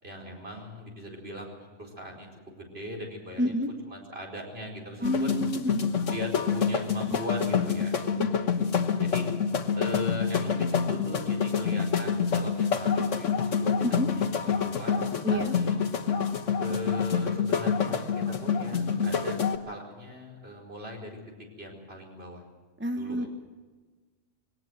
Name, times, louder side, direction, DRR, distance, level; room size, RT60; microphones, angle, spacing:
voice 1, 0.0-2.3 2.6-3.4 3.9-5.4 6.1-8.0 9.0-9.3 9.7-13.7 14.1-15.8 16.6-19.4 19.7-21.2 21.6-22.4 22.9-23.3, left 1 dB, 55° right, -1 dB, 5.0 m, -39 dB
voice 2, 3.4-3.7 5.0-5.8 7.1-7.2 8.1-8.3 13.8-14.1 15.2-15.6 22.8-23.3, equal, 10° right, 6 dB, 0.9 m, -29 dB
sound 1, 5.0-19.6, left 6 dB, 85° left, 1.5 m, -27 dB
21.0 x 18.5 x 7.8 m, 1.3 s
omnidirectional pair, 1.3 m